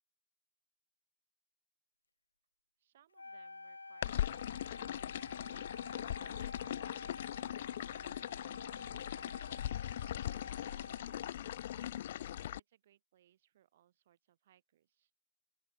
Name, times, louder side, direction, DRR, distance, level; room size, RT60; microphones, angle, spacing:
voice 1, 2.8-4.2 4.7-8.3 8.7-9.4 10.1-15.1, right 12 dB, 40° right, 7.0 m, -69 dB
Wind instrument woodwind instrument, 3.1-11.4, left 3 dB, 75° left, 3.5 m, -50 dB
sound 1, 4.0-12.6, left 12 dB, 40° left, 0.5 m, -40 dB
open air
figure-of-eight pair, 135°, 0 cm